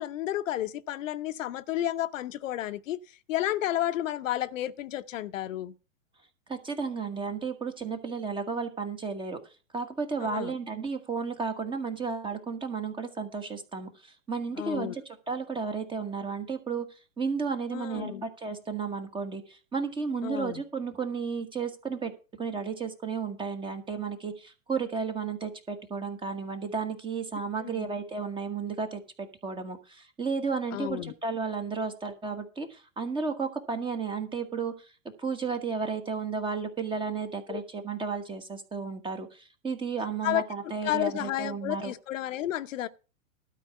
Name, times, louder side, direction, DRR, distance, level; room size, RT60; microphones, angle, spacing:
voice 1, 0.0-3.0 3.3-5.7 10.2-10.5 14.6-15.0 17.7-18.2 20.2-20.6 27.6-27.9 30.7-31.1 37.5-37.6 40.2-40.4 40.8-42.9, left 13 dB, 70° left, 0.8 m, -31 dB
voice 2, 6.5-9.4 9.7-22.1 22.4-34.9 35.2-41.9, right 5 dB, 10° right, 1.3 m, -33 dB
12.5 x 4.7 x 8.0 m
hypercardioid pair, 135°, 41 cm